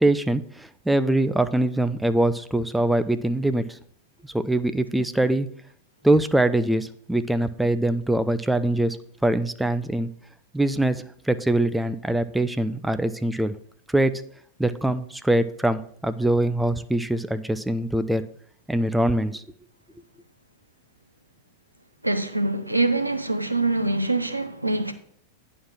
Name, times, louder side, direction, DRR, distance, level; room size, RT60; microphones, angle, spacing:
voice 1, 0.0-3.8 4.3-5.5 6.0-9.0 9.2-10.1 10.5-13.5 13.9-14.1 14.6-18.2 18.7-19.4, right 1 dB, 5° right, 0.4 m, -23 dB
voice 2, 22.0-24.9, right 2 dB, 85° right, 0.7 m, -24 dB
9.2 x 4.4 x 6.0 m
figure-of-eight pair, 90°, 0 cm